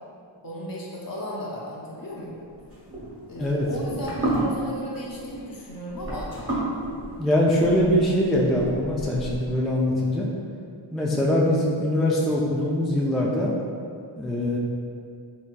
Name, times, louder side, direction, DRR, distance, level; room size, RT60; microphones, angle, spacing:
voice 1, 0.4-2.4 3.3-6.3, equal, 45° left, -5 dB, 0.8 m, -35 dB
sound 1, 2.6-9.6, right 1 dB, 25° right, 1.1 m, -32 dB
voice 2, 7.2-10.3 10.9-13.5 14.2-14.6, left 1 dB, ahead, -4 dB, 0.3 m, -22 dB
4.0 x 3.4 x 2.2 m, 2.3 s
wide cardioid pair, 55°, 49 cm